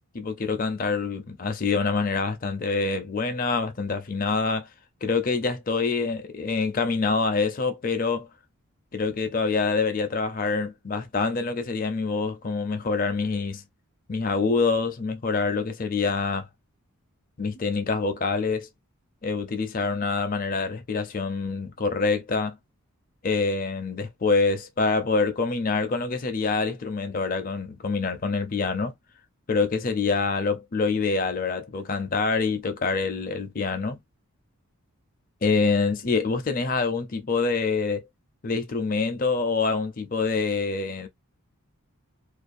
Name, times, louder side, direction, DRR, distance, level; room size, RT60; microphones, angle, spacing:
voice 1, 0.1-4.7 5.0-8.3 8.9-13.6 14.1-16.5 17.4-18.7 19.2-22.6 23.2-28.9 29.5-34.0 35.4-38.0 38.4-41.1, left 4 dB, 40° left, 0.5 m, -26 dB
2.5 x 2.2 x 2.5 m
head